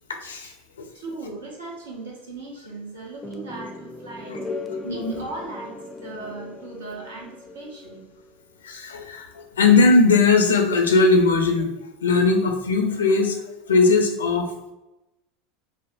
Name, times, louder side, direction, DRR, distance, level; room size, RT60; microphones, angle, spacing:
voice 1, 0.2-0.9 4.3-4.4 4.7-5.3 8.6-11.7 12.0-13.4 13.7-14.5, left 3 dB, 85° left, 4 dB, 0.5 m, -19 dB
voice 2, 0.9-4.5 4.9-8.0, right 2 dB, 85° right, -2 dB, 0.9 m, -38 dB
sound 1, 3.2-8.3, left 2 dB, 10° left, 0.4 m, -38 dB
3.5 x 2.1 x 2.6 m, 0.96 s
hypercardioid pair, 85°, 0 cm